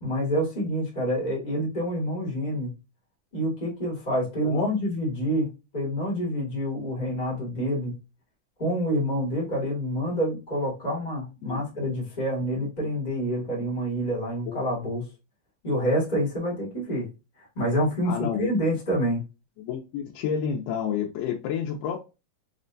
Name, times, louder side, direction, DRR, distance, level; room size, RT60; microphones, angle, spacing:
voice 1, 0.0-2.7 3.3-7.9 8.6-15.0 15.6-17.1 17.5-19.2, equal, 40° left, 0.6 m, -27 dB
voice 2, 18.1-18.5 19.6-22.0, left 7 dB, 90° left, 2.2 m, -29 dB
5.8 x 2.2 x 2.5 m
omnidirectional pair, 3.8 m